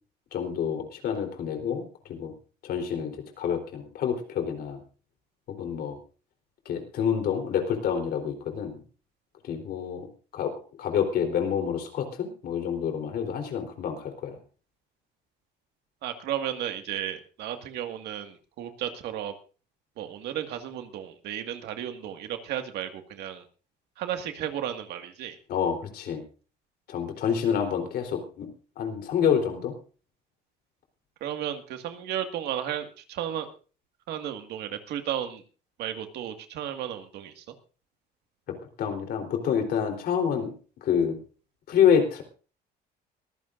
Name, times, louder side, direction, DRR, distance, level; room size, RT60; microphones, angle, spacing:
voice 1, 0.3-2.3 2.6-4.8 5.5-6.0 6.7-8.8 9.4-10.1 10.3-10.5 10.8-14.4 25.5-26.2 26.9-28.5 28.8-29.7 38.8-40.5 40.8-41.2 41.7-42.2, left 8 dB, 65° left, 4 dB, 3.9 m, -27 dB
voice 2, 16.0-19.3 20.0-23.4 24.0-25.4 31.2-33.5 34.1-35.4 35.8-37.4, right 10 dB, 80° right, 6 dB, 2.0 m, -34 dB
23.0 x 15.0 x 2.6 m, 0.37 s
cardioid pair, 110°, 17 cm